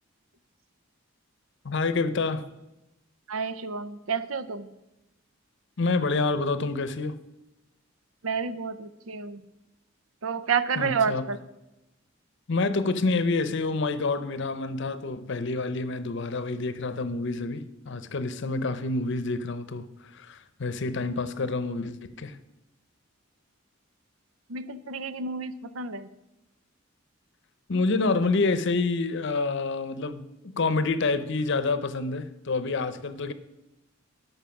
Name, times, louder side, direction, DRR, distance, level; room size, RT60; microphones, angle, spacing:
voice 1, 1.6-2.5 5.8-7.2 10.8-11.2 12.5-22.4 27.7-33.3, left 3 dB, 60° left, 0.7 m, -28 dB
voice 2, 3.3-4.7 8.2-9.4 10.2-11.4 24.5-26.1, right 5 dB, 80° right, 0.6 m, -30 dB
12.5 x 5.6 x 5.8 m
head